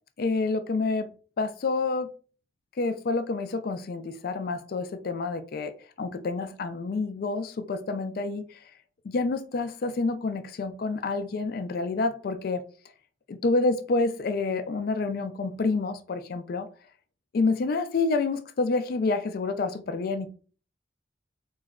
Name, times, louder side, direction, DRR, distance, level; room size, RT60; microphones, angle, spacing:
voice 1, 0.2-1.1 1.4-2.1 2.8-5.7 6.0-8.6 9.0-12.6 13.3-16.7 17.3-20.3, left 3 dB, 50° left, 0.3 m, -28 dB
3.0 x 2.2 x 3.5 m
head